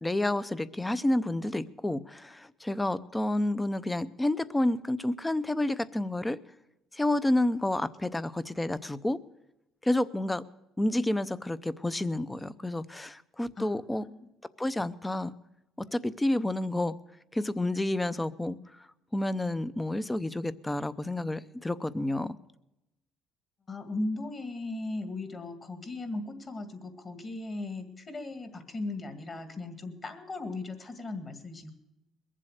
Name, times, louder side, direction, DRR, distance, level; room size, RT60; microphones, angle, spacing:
voice 1, 0.0-6.4 6.9-9.2 9.8-10.4 10.8-14.0 14.6-15.3 15.9-17.0 17.3-18.9 19.1-22.4, left 1 dB, 10° left, 16 dB, 0.6 m, -29 dB
voice 2, 13.6-14.1 23.7-31.7, left 2 dB, 30° left, 7 dB, 2.0 m, -37 dB
22.0 x 7.5 x 6.4 m, 0.92 s
cardioid pair, 120°, 0 cm